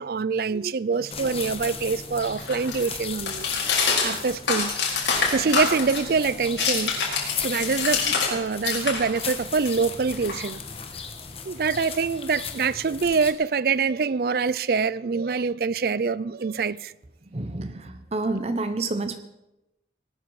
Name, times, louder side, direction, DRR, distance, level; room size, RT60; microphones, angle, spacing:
voice 1, 0.0-3.5 4.0-4.7 5.3-7.0 7.4-10.6 11.5-16.9, right 5 dB, 55° right, 0.4 m, -25 dB
sound 1, 1.0-8.3 8.6-10.8, left 5 dB, 80° left, 4.3 m, -27 dB
sound 2, 1.1-13.3, left 6 dB, 35° left, 1.3 m, -36 dB
voice 2, 17.3-19.2, right 2 dB, 35° right, 0.8 m, -29 dB
18.5 x 12.5 x 4.8 m
head